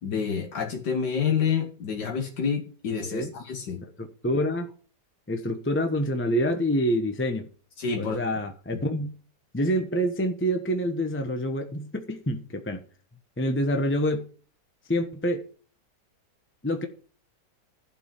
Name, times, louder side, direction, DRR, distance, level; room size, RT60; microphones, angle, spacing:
voice 1, 0.0-3.8 7.8-8.2 8.7-8.8, left 6 dB, 80° left, 1.9 m, -28 dB
voice 2, 4.0-4.7 5.3-7.5 8.0-9.1 9.5-12.8 13.4-14.3 14.9-15.4 16.6-16.9, equal, 10° left, 0.8 m, -27 dB
12.0 x 5.4 x 7.2 m
omnidirectional pair, 1.8 m